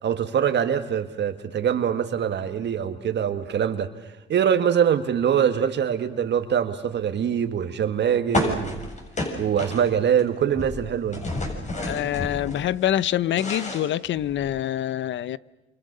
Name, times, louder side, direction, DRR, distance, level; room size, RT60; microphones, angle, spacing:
voice 1, 0.0-3.9 4.3-8.8 9.4-11.2, right 8 dB, 60° right, 1.7 m, -23 dB
sound 1, 8.3-10.2 10.5-12.6 13.0-14.6, left 2 dB, 35° left, 7.4 m, -30 dB
voice 2, 11.8-15.4, left 12 dB, 70° left, 0.8 m, -25 dB
29.0 x 27.0 x 6.7 m
cardioid pair, 90°, 20 cm